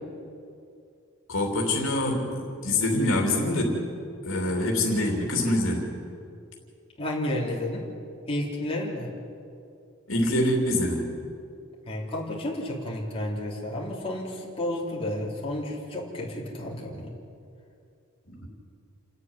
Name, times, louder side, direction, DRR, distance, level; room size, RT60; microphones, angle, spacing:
voice 1, 1.3-3.8 4.2-5.9 10.1-11.1 16.9-17.0 18.3-18.5, left 1 dB, 65° left, 0 dB, 3.0 m, -25 dB
voice 2, 7.0-7.9 8.3-9.1 11.9-17.1, left 1 dB, 25° left, -4 dB, 3.5 m, -31 dB
28.5 x 9.6 x 9.7 m, 2.5 s
head